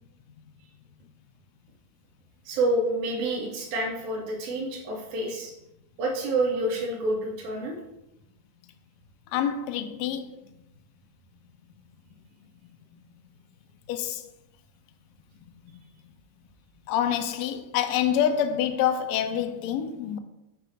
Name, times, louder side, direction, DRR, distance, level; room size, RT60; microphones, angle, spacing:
voice 1, 2.5-5.5 6.0-7.8, right 2 dB, 80° right, 2.3 m, -28 dB
voice 2, 9.3-10.4 13.9-14.3 16.9-20.2, left 9 dB, 80° left, 1.6 m, -26 dB
6.8 x 2.5 x 5.5 m
omnidirectional pair, 3.4 m